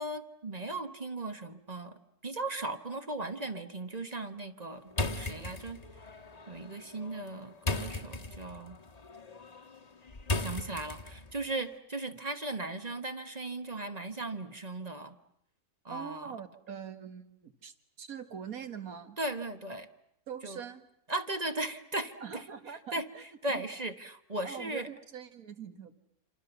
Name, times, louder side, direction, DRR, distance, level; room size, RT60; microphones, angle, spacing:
voice 1, 0.0-6.2 6.5-8.8 10.4-15.2 15.8-16.3 19.2-19.9 20.4-20.6 21.1-22.4 22.9-24.9, right 2 dB, 30° right, 9 dB, 1.0 m, -37 dB
sound 1, 4.9-11.4, left 2 dB, 25° left, 1.3 m, -37 dB
voice 2, 15.9-19.2 20.3-20.9 22.2-23.6 24.4-25.9, right 7 dB, 65° right, 9 dB, 2.0 m, -43 dB
27.0 x 27.0 x 7.0 m, 0.75 s
omnidirectional pair, 1.6 m